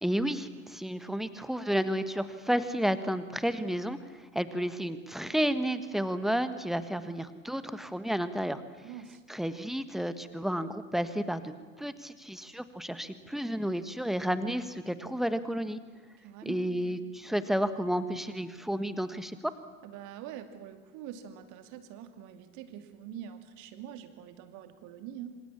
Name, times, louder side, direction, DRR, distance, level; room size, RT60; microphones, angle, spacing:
voice 1, 0.0-4.0 4.3-8.6 9.3-11.5 11.8-15.8 16.4-19.5, equal, ahead, 12 dB, 1.5 m, -31 dB
voice 2, 8.8-9.2 16.2-17.0 19.8-25.4, right 9 dB, 45° right, 8 dB, 2.6 m, -45 dB
26.5 x 26.5 x 7.3 m, 1.4 s
figure-of-eight pair, 80°, 41 cm